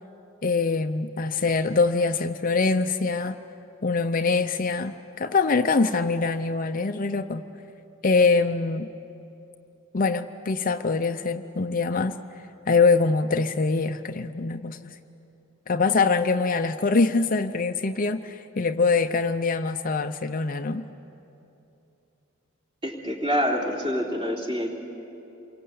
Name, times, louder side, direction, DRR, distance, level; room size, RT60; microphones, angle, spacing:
voice 1, 0.4-3.4 3.8-7.4 8.0-8.9 9.9-12.1 12.7-15.0 15.7-20.8, left 4 dB, 40° left, 7 dB, 0.6 m, -24 dB
voice 2, 22.8-24.7, equal, 25° right, -1 dB, 3.4 m, -26 dB
28.0 x 23.5 x 8.6 m, 2.9 s
head